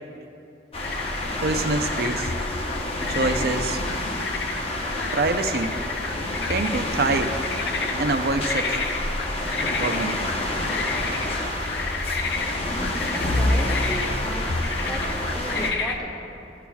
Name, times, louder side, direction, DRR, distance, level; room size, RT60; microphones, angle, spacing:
sound 1, 0.7-15.7, left 1 dB, 35° left, 0.8 m, -28 dB
sound 2, 0.8-16.0, left 4 dB, 70° left, 0.6 m, -32 dB
voice 1, 1.4-2.3 3.1-3.8 5.1-5.8 6.5-7.4 7.9-8.8 9.8-10.2, right 3 dB, 60° right, 7 dB, 0.5 m, -25 dB
voice 2, 13.1-15.0 15.3-16.1, right 1 dB, ahead, -2 dB, 1.2 m, -35 dB
17.0 x 8.5 x 2.3 m, 2.7 s
head